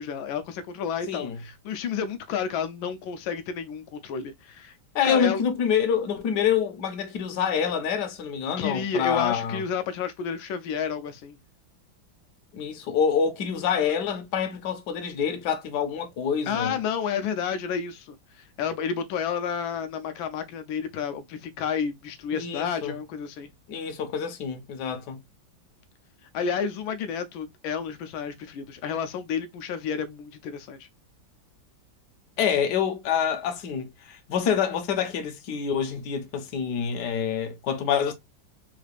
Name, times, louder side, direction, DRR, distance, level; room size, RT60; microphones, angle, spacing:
voice 1, 0.0-4.8 5.0-5.4 8.6-11.4 16.5-23.5 26.3-30.9, left 7 dB, 85° left, 1.3 m, -31 dB
voice 2, 4.9-9.6 12.5-16.8 22.3-22.9 23.7-25.2 32.4-38.1, left 7 dB, 65° left, 1.3 m, -26 dB
3.7 x 3.3 x 2.3 m
omnidirectional pair, 2.1 m